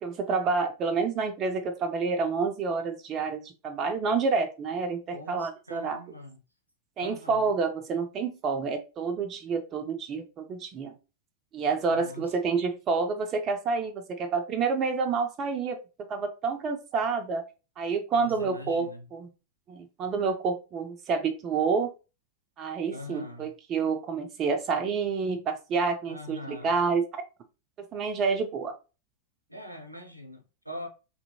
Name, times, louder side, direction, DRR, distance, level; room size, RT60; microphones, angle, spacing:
voice 1, 0.0-6.0 7.0-10.9 11.5-15.8 16.1-17.4 17.8-19.3 19.7-21.9 22.6-27.2 27.9-28.7, right 4 dB, 30° right, 0.4 m, -28 dB
voice 2, 5.1-6.4 7.0-7.5 11.9-12.4 18.1-19.1 22.9-23.5 26.1-26.8 29.5-30.9, left 1 dB, 90° right, 0.5 m, -43 dB
2.7 x 2.5 x 2.7 m
figure-of-eight pair, 90°, 0 cm